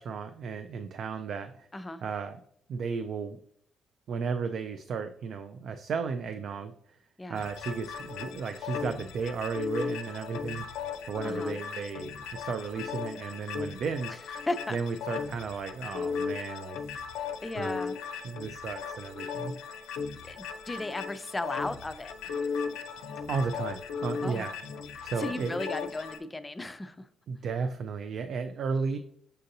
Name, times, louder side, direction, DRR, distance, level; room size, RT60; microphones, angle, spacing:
voice 1, 0.0-1.7 2.0-2.4 2.7-3.4 4.1-7.0 7.3-10.7 11.1-14.2 14.7-16.8 17.6-17.8 18.2-19.5 23.3-24.6 25.0-25.7 27.3-29.0, right 5 dB, 65° right, 8 dB, 0.3 m, -34 dB
sound 1, 7.3-26.2, left 6 dB, 90° left, 0.5 m, -37 dB
voice 2, 11.2-11.6 14.5-14.8 17.4-18.0 20.2-22.1 24.2-24.5 25.0-27.0, left 2 dB, 20° left, 11 dB, 0.4 m, -35 dB
6.5 x 2.6 x 2.7 m, 0.67 s
cardioid pair, 90°, 0 cm